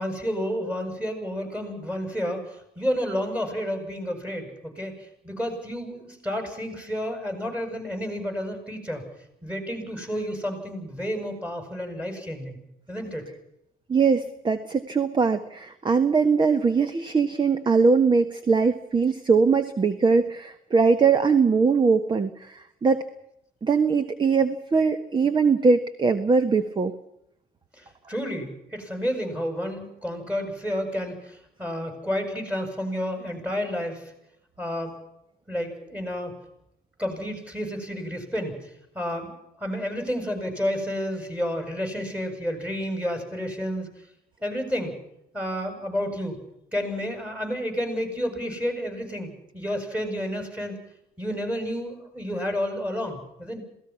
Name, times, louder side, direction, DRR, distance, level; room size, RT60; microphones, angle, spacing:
voice 1, 0.0-9.1 9.4-12.6 12.9-13.3 27.7-34.1 34.6-35.0 35.5-36.4 37.0-39.3 39.6-43.9 44.4-45.0 45.3-46.4 46.7-50.8 51.2-53.6, equal, 10° right, 5 dB, 7.9 m, -30 dB
voice 2, 13.9-23.1 23.6-26.9, right 5 dB, 25° right, 11 dB, 1.4 m, -21 dB
27.5 x 18.0 x 5.9 m, 0.79 s
cardioid pair, 110°, 17 cm